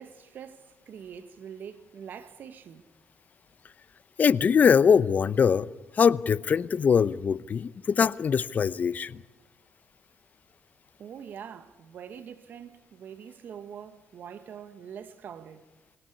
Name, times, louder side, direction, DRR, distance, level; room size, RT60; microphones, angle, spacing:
voice 1, 0.0-2.8 11.0-15.7, right 8 dB, 65° right, 1.5 m, -44 dB
voice 2, 4.2-5.7 6.0-9.2, left 6 dB, 50° left, 0.7 m, -22 dB
22.0 x 17.5 x 9.8 m
supercardioid pair, 55°, 3 cm